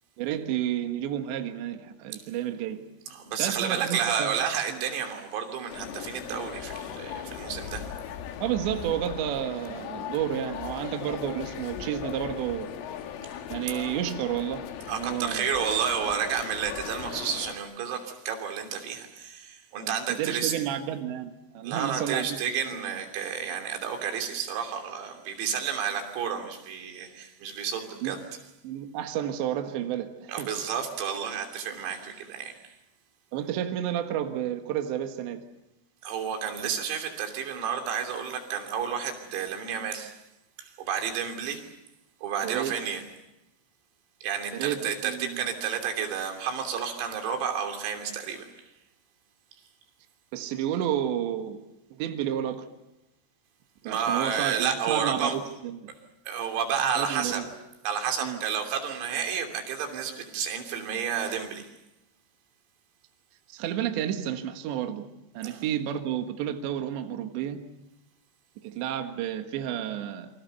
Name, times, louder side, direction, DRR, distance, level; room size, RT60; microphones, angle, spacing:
voice 1, 0.2-2.8 3.4-4.4 4.7-4.8 8.4-12.7 13.5-15.5 19.8-22.4 28.0-28.3 28.6-30.5 33.3-35.4 42.4-42.8 44.5-45.5 50.3-51.6 51.9-52.7 53.8-55.9 57.0-57.5 58.2-58.4 63.5-65.1 65.3-67.6 68.6-70.3, right 10 dB, 70° right, 5 dB, 3.5 m, -31 dB
voice 2, 3.1-7.9 14.9-20.5 21.6-28.2 30.3-32.6 36.0-40.2 40.6-41.7 42.2-43.0 44.2-48.5 53.8-55.4 56.3-57.4 57.8-61.7 65.4-65.6, right 7 dB, 90° right, 4 dB, 5.8 m, -31 dB
sound 1, 5.7-17.6, left 9 dB, 75° left, 4.1 m, -38 dB
28.5 x 24.5 x 6.9 m, 0.91 s
omnidirectional pair, 5.9 m